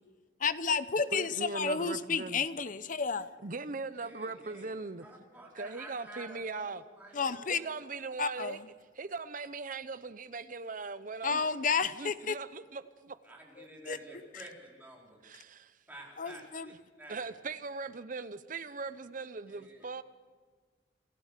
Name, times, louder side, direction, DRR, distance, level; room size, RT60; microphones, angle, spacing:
voice 1, 0.4-3.3 7.1-7.6 8.2-8.7 11.2-12.4 13.6-14.0 16.2-16.7, left 5 dB, 45° left, 0.7 m, -31 dB
voice 2, 1.1-2.4 3.4-5.1 5.5-6.8 7.5-8.6 9.0-11.5 11.9-13.2 15.2-15.7 17.1-20.0, right 4 dB, 45° right, 0.8 m, -40 dB
voice 3, 4.0-4.7 5.0-7.7 13.2-14.5 14.8-15.2 15.9-17.3 19.5-19.9, right 1 dB, 10° right, 4.3 m, -50 dB
28.5 x 13.5 x 6.7 m
head